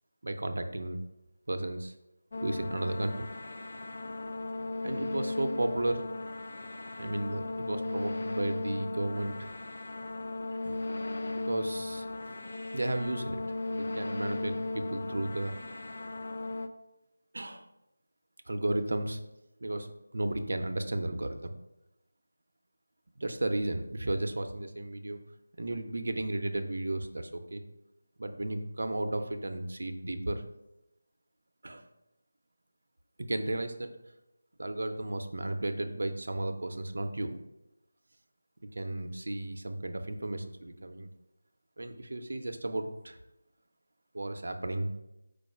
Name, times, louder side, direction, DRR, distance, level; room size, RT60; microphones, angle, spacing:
voice 1, 0.2-1.0 1.5-1.9 2.4-3.3 4.8-6.1 7.0-9.5 10.6-10.8 11.3-12.1 12.7-13.4 13.7-15.5 17.3-17.7 18.5-19.2 19.6-21.5 23.2-25.2 25.6-27.6 28.2-30.4 31.6-31.8 33.2-33.9 34.6-37.4 38.7-41.1 41.8-43.2 44.1-44.9, right 1 dB, 65° right, 6 dB, 0.5 m, -34 dB
sound 1, 2.3-16.7, left 2 dB, 50° left, 0.3 m, -37 dB
4.9 x 2.3 x 4.5 m, 0.91 s
figure-of-eight pair, 175°, 0 cm